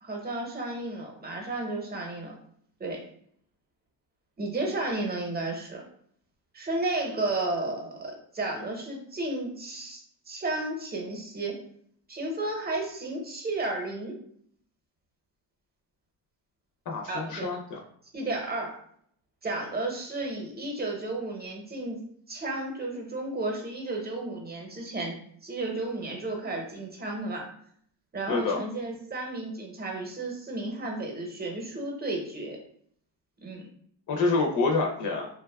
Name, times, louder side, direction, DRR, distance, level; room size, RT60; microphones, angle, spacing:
voice 1, 0.0-2.3 2.8-3.0 4.4-5.8 6.5-10.0 10.3-11.5 12.1-14.2 17.1-17.5 18.1-18.8 19.4-22.0 22.3-25.2 25.4-27.5 28.1-32.6 33.4-33.6, right 2 dB, 20° right, 1 dB, 0.8 m, -33 dB
voice 2, 16.9-17.8 28.3-28.6 34.1-35.3, left 3 dB, 45° left, 1 dB, 0.5 m, -27 dB
2.7 x 2.3 x 2.2 m, 0.64 s
supercardioid pair, 70°, 44 cm